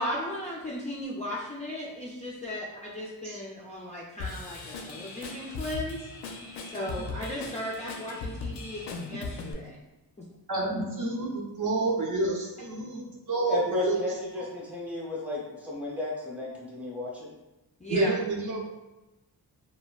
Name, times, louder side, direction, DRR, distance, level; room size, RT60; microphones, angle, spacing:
voice 1, 0.0-6.1 6.7-9.8 10.2-10.3 17.8-18.1, left 1 dB, 20° left, -5 dB, 0.4 m, -36 dB
Drum kit / Drum, 4.2-9.5, left 3 dB, 85° left, 0.5 m, -38 dB
voice 2, 10.5-14.0 17.9-18.7, right 2 dB, 50° right, -2 dB, 0.6 m, -29 dB
voice 3, 13.5-17.3, left 2 dB, 5° right, -5 dB, 0.8 m, -33 dB
3.1 x 2.2 x 2.3 m, 0.99 s
wide cardioid pair, 95°, 40 cm